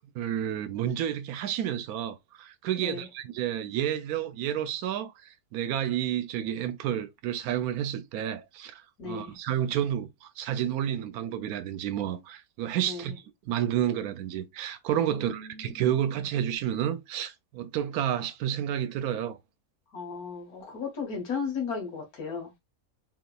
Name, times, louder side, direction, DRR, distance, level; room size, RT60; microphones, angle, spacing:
voice 1, 0.1-13.1 13.5-19.4, right 10 dB, 80° right, 1.0 m, -30 dB
voice 2, 2.8-3.1 9.0-9.4 12.8-13.2 15.1-16.3 19.9-22.6, left 5 dB, 80° left, 1.8 m, -36 dB
4.2 x 2.9 x 2.2 m
omnidirectional pair, 1.6 m